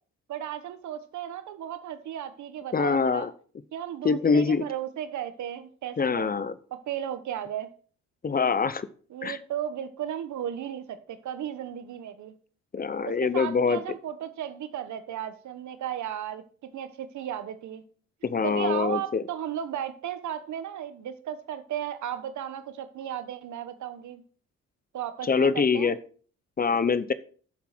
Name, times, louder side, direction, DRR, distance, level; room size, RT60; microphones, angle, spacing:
voice 1, 0.3-3.3 3.7-6.3 6.7-7.7 9.1-12.3 13.0-17.8 18.4-24.2 24.9-25.9, right 10 dB, 70° right, 11 dB, 1.3 m, -35 dB
voice 2, 2.7-3.3 4.0-4.6 6.0-6.5 8.2-8.9 9.2-9.4 12.7-13.8 18.2-19.2 25.2-26.0 26.6-27.1, left 5 dB, 30° left, 16 dB, 0.7 m, -24 dB
7.3 x 7.2 x 6.1 m, 0.43 s
cardioid pair, 90°, 30 cm